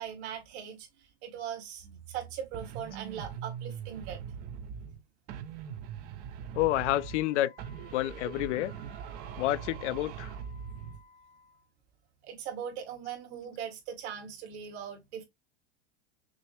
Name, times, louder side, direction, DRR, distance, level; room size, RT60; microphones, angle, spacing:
voice 1, 0.0-4.2 12.2-15.2, right 9 dB, 65° right, 2.2 m, -40 dB
sound 1, 2.5-5.0 5.3-7.3 7.6-11.0, right 8 dB, 30° right, 0.4 m, -41 dB
voice 2, 6.5-7.5 7.9-8.7 9.4-10.3, left 15 dB, 75° left, 0.5 m, -29 dB
Wind instrument woodwind instrument, 6.9-11.7, left 4 dB, 15° left, 0.6 m, -58 dB
6.0 x 2.1 x 3.1 m
supercardioid pair, 150°, 36 cm